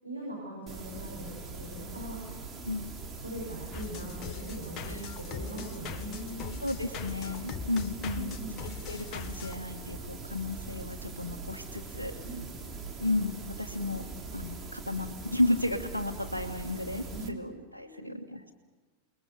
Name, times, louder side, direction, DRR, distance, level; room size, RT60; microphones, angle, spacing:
voice 1, 0.0-2.5 3.2-6.5 8.1-8.5 12.2-12.4 17.1-17.5 17.8-18.2, right 1 dB, 85° right, -5 dB, 6.9 m, -41 dB
sound 1, 0.7-17.3, right 4 dB, 20° right, 2.9 m, -42 dB
sound 2, 3.7-9.6, left 7 dB, 35° left, 1.5 m, -41 dB
voice 2, 6.6-8.3 8.9-12.1 13.0-14.0 14.3-18.5, left 2 dB, 80° left, 0 dB, 1.5 m, -33 dB
29.0 x 21.0 x 6.8 m, 1.3 s
figure-of-eight pair, 90°, 0 cm